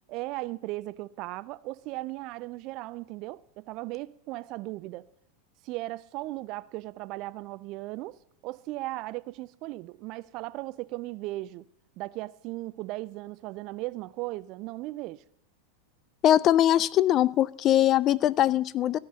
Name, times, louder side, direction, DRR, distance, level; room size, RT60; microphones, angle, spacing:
voice 1, 0.1-5.1 5.6-11.7 12.0-15.2, right 19 dB, 45° right, 0.3 m, -37 dB
voice 2, 16.2-19.0, left 12 dB, 35° left, 0.3 m, -22 dB
14.0 x 5.2 x 7.5 m
figure-of-eight pair, 90°, 0 cm